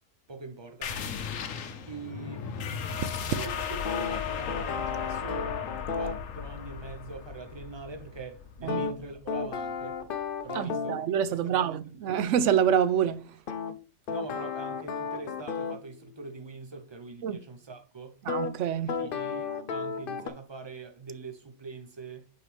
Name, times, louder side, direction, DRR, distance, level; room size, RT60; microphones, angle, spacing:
voice 1, 0.3-0.9 1.9-2.5 3.3-5.6 5.9-10.0 10.4-11.8 14.1-18.2 19.0-22.3, right 4 dB, 25° right, 0.7 m, -43 dB
sound 1, 0.8-10.0, left 7 dB, 70° left, 1.1 m, -36 dB
sound 2, 3.8-6.2 8.7-11.0 13.5-15.8 18.3-18.5 18.9-20.3, left 5 dB, 55° left, 0.7 m, -33 dB
voice 2, 10.5-13.4 17.2-17.4 18.3-19.0, right 8 dB, 65° right, 0.9 m, -26 dB
8.1 x 4.6 x 3.3 m
omnidirectional pair, 1.4 m